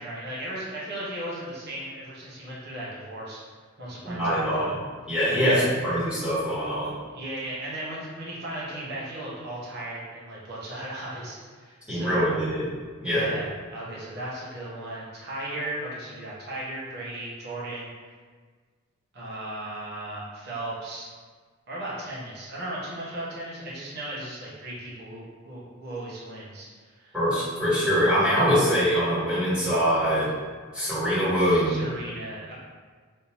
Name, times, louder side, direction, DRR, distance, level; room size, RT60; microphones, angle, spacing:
voice 1, 0.0-3.4 3.8-4.7 5.3-5.7 7.1-12.3 13.0-17.9 19.1-21.2 21.7-27.2 31.5-32.5, right 1 dB, 55° right, -6 dB, 0.8 m, -36 dB
voice 2, 4.0-4.7 5.1-6.9 11.9-12.6 13.0-13.3 27.1-30.3 30.7-31.8, equal, 5° right, -13 dB, 1.4 m, -23 dB
3.4 x 2.7 x 2.9 m, 1.5 s
head